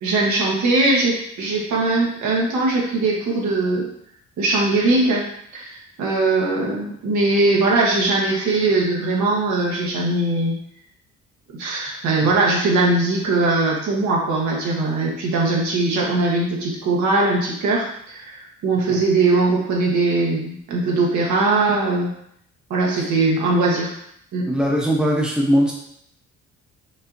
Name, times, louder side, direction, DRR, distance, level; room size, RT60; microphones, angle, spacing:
voice 1, 0.0-3.8 4.4-5.3 5.5-10.5 11.6-22.1 22.7-23.9 24.3-24.5, right 2 dB, 75° right, -2 dB, 1.2 m, -20 dB
voice 2, 24.5-25.7, equal, 5° right, -3 dB, 0.9 m, -19 dB
5.2 x 2.7 x 2.6 m, 0.71 s
cardioid pair, 90°, 30 cm